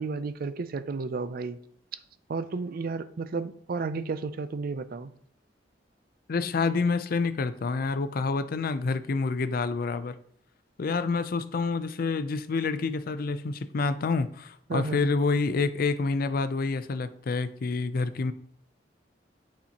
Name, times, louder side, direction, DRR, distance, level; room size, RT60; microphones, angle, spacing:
voice 1, 0.0-1.6 2.3-5.1 14.7-15.1, right 4 dB, 55° right, 0.4 m, -32 dB
voice 2, 6.3-10.2 10.8-18.3, left 4 dB, 55° left, 0.4 m, -28 dB
8.4 x 4.3 x 2.9 m
head